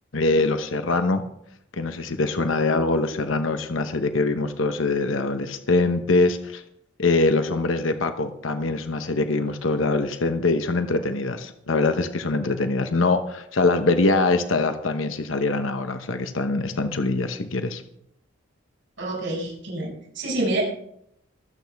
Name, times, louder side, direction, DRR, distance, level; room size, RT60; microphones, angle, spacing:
voice 1, 0.1-1.2 1.7-6.6 7.0-17.8, left 3 dB, 80° left, 8 dB, 1.0 m, -23 dB
voice 2, 19.0-20.6, right 2 dB, 70° right, -2 dB, 6.6 m, -27 dB
24.0 x 8.5 x 3.5 m, 0.74 s
head